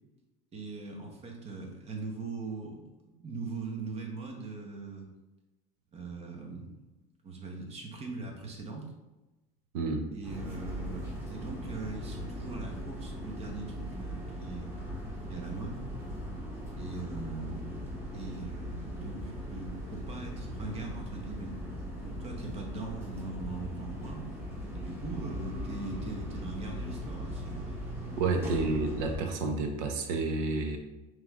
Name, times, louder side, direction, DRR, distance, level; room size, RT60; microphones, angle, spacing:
voice 1, 0.5-5.1 5.9-6.7 7.2-8.9 10.1-14.8 15.3-15.8 16.8-17.8 18.1-21.5 22.0-24.3 24.7-27.7 28.4-28.8, right 3 dB, 35° right, 1 dB, 1.0 m, -40 dB
voice 2, 9.7-10.1 28.2-30.8, right 3 dB, 75° right, 4 dB, 0.7 m, -30 dB
sound 1, 10.2-29.2, equal, 15° right, 1.4 m, -39 dB
5.0 x 3.2 x 2.4 m, 1.1 s
supercardioid pair, 110°, 19 cm